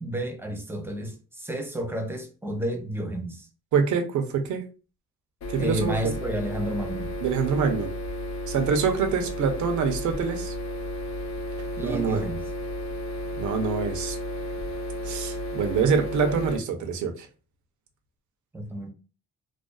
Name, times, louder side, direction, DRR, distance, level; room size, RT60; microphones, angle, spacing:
voice 1, 0.0-3.5 5.6-7.1 11.8-12.4 18.5-18.9, right 1 dB, 10° right, 0.6 m, -31 dB
voice 2, 3.7-4.6 5.5-5.9 7.2-7.9 8.5-10.5 11.8-12.2 13.4-14.2 15.0-17.3, right 6 dB, 75° right, 0.7 m, -25 dB
sound 1, 5.4-16.6, left 1 dB, 65° left, 0.5 m, -33 dB
2.5 x 2.3 x 2.3 m
cardioid pair, 90°, 30 cm